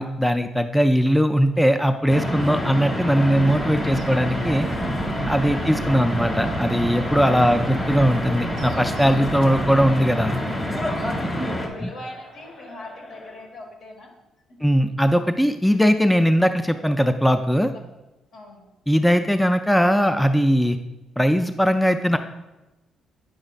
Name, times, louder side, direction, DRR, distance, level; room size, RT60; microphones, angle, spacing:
voice 1, 0.0-4.7 5.3-10.4 11.8-11.9 14.6-17.7 18.9-20.8 21.2-22.2, equal, 5° left, 8 dB, 0.3 m, -20 dB
sound 1, 2.1-11.7, equal, 25° left, 1.5 m, -27 dB
sound 2, 3.3-10.0, right 7 dB, 65° right, 0.5 m, -39 dB
Crowd, 5.4-13.5, left 2 dB, 50° left, 2.6 m, -44 dB
voice 2, 10.9-14.2 14.5-14.6 18.3-18.6, left 1 dB, 70° left, 1 dB, 1.7 m, -41 dB
8.8 x 6.3 x 2.4 m, 1.0 s
cardioid pair, 90°, 0 cm